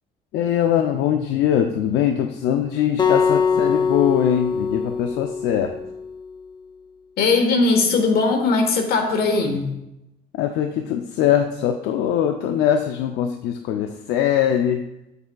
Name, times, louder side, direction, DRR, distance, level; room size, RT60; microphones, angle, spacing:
voice 1, 0.3-5.8 10.4-14.9, left 10 dB, 85° left, 5 dB, 0.5 m, -22 dB
Acoustic guitar, 3.0-6.2, left 5 dB, 25° left, 0.6 m, -22 dB
voice 2, 7.2-9.7, left 3 dB, 65° left, 4 dB, 1.3 m, -19 dB
8.3 x 6.8 x 2.3 m, 0.88 s
cardioid pair, 110°, 17 cm